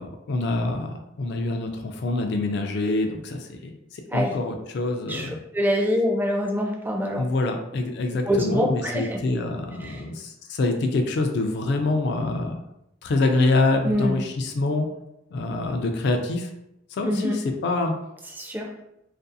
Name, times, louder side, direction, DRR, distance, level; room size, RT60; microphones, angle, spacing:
voice 1, 0.0-5.4 7.2-12.6 13.0-14.9 15.3-16.5 16.9-17.9, left 2 dB, 65° left, 4 dB, 0.3 m, -25 dB
voice 2, 5.1-7.2 8.3-9.2 9.8-10.0 13.8-14.2 17.0-17.4 18.4-18.7, equal, 10° right, 0 dB, 0.3 m, -25 dB
2.5 x 2.3 x 2.5 m, 0.84 s
head